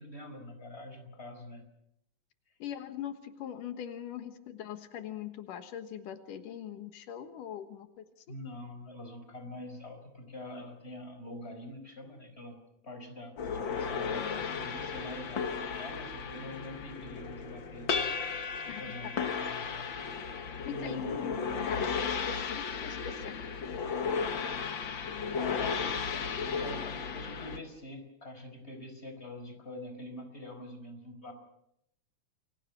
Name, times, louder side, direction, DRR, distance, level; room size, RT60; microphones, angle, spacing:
voice 1, 0.0-1.6 8.3-12.6 12.8-18.1 18.8-19.9 20.6-21.4 25.4-31.3, left 1 dB, 20° left, 6 dB, 4.9 m, -45 dB
voice 2, 2.6-8.2 18.7-18.8 20.7-21.4 21.7-23.6, left 9 dB, 85° left, 8 dB, 3.0 m, -41 dB
sound 1, 13.4-27.6, left 5 dB, 50° left, 1.7 m, -35 dB
29.0 x 23.5 x 6.1 m, 0.79 s
omnidirectional pair, 3.7 m